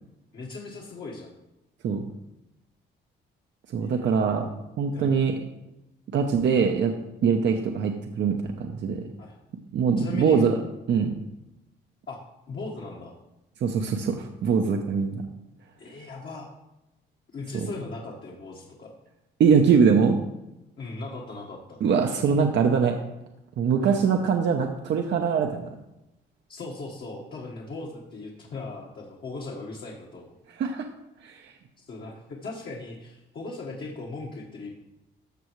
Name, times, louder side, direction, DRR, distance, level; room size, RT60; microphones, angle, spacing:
voice 1, 0.3-1.3 3.8-4.2 4.9-5.2 9.2-9.4 10.0-10.5 12.1-12.2 12.5-13.1 15.8-16.5 17.3-18.9 20.8-21.8 23.8-24.0 26.5-30.3 31.8-34.7, left 3 dB, 55° left, -3 dB, 1.5 m, -38 dB
voice 2, 3.7-4.5 4.8-5.4 6.1-6.9 7.2-9.0 9.7-10.6 10.9-11.1 13.6-15.2 17.5-17.7 19.4-20.2 21.8-22.9 23.6-25.6 30.6-30.8 31.2-31.5, right 6 dB, 65° right, 3 dB, 0.8 m, -22 dB
13.5 x 6.2 x 3.2 m, 0.92 s
cardioid pair, 90°, 20 cm